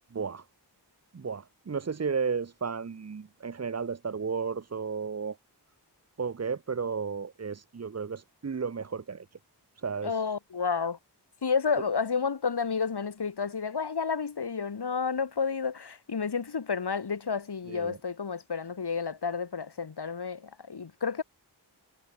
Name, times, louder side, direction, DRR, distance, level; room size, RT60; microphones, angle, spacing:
voice 1, 0.1-0.4 1.1-5.4 6.2-9.3 9.8-10.3 17.7-18.0, right 5 dB, 40° right, 0.6 m, -33 dB
voice 2, 10.0-11.0 11.4-21.2, left 5 dB, 65° left, 1.1 m, -31 dB
wide cardioid pair, 50°, 42 cm